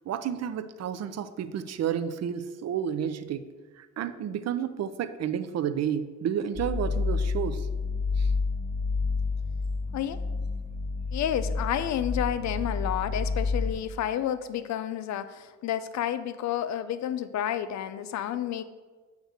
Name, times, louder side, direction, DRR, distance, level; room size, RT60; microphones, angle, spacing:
voice 1, 0.1-3.5 3.8-7.7 8.2-8.3, right 8 dB, 60° right, 11 dB, 0.6 m, -31 dB
sound 1, 6.5-13.7, left 4 dB, 15° left, 2.4 m, -29 dB
voice 2, 11.1-18.6, left 10 dB, 65° left, 13 dB, 0.5 m, -30 dB
8.0 x 3.2 x 6.4 m, 1.4 s
cardioid pair, 90°, 30 cm